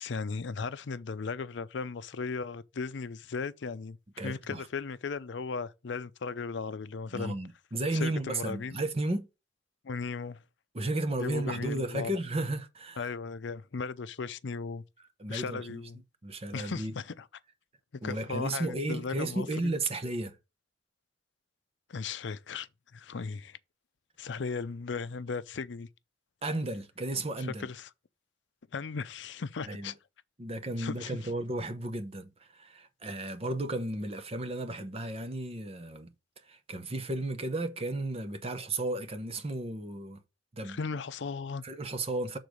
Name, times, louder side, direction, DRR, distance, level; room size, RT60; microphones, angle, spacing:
voice 1, 0.0-7.4 7.9-8.8 9.8-10.4 11.2-12.1 13.0-14.8 15.3-16.0 16.5-17.3 17.9-19.7 21.9-23.6 24.2-25.9 27.4-27.9 28.7-29.9 30.8-31.3 40.6-41.6, left 4 dB, 70° left, 0.5 m, -37 dB
voice 2, 4.2-4.7 7.1-9.3 10.7-13.1 15.2-15.8 16.2-16.9 18.0-20.4 26.4-27.7 29.7-29.9 30.4-36.1 36.5-40.2 40.5-40.8 41.6-42.4, right 2 dB, 30° right, 0.8 m, -34 dB
6.8 x 3.9 x 6.2 m
head